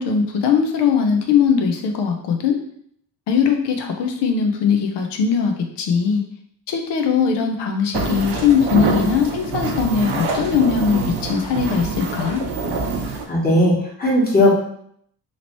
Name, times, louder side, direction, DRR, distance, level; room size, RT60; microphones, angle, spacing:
voice 1, 0.0-2.6 3.3-6.2 6.7-12.4, left 6 dB, 90° left, 4 dB, 0.7 m, -20 dB
sound 1, 7.9-13.2, right 4 dB, 90° right, 0.6 m, -25 dB
voice 2, 13.3-14.6, left 1 dB, 25° left, -5 dB, 1.4 m, -17 dB
2.9 x 2.8 x 3.0 m, 0.65 s
cardioid pair, 75°, 40 cm